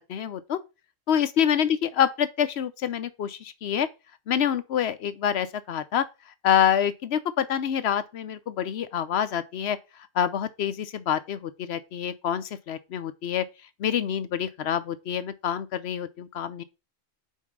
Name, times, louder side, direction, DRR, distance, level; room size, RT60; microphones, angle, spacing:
voice 1, 0.1-0.6 1.1-3.9 4.3-6.1 6.4-9.8 10.1-13.5 13.8-16.6, left 9 dB, 60° left, 0.8 m, -26 dB
5.5 x 4.6 x 6.1 m
omnidirectional pair, 1.4 m